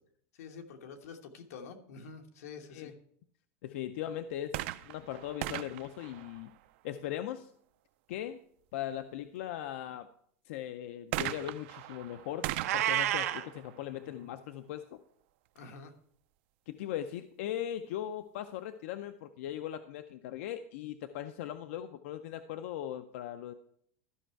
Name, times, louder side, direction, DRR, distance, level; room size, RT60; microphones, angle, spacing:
voice 1, 0.3-2.9 15.5-15.9, left 5 dB, 85° left, 5 dB, 1.3 m, -47 dB
voice 2, 3.6-6.5 6.8-7.5 8.1-8.4 8.7-10.1 10.5-15.0 16.7-23.5, left 11 dB, 60° left, 10 dB, 0.5 m, -39 dB
sound 1, 4.4-7.0 11.1-14.8 15.6-15.7, right 16 dB, 50° right, 0.4 m, -40 dB
Meow, 12.6-13.4, right 13 dB, 85° right, 0.8 m, -29 dB
12.5 x 5.5 x 4.5 m, 0.65 s
supercardioid pair, 175°, 8 cm